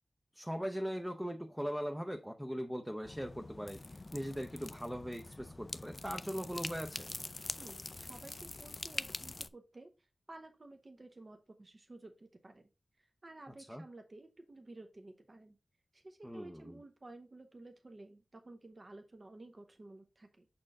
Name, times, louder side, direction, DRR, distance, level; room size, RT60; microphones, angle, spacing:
voice 1, 0.3-3.8 4.1-7.1 13.7-13.8 16.2-16.8, equal, 5° right, 4 dB, 0.6 m, -40 dB
sound 1, 3.0-9.5, left 2 dB, 35° left, 0.3 m, -44 dB
voice 2, 7.6-12.7 13.0-15.6 15.9-20.5, right 2 dB, 40° right, 6 dB, 0.7 m, -53 dB
6.3 x 4.4 x 3.6 m, 0.28 s
wide cardioid pair, 100°, 0 cm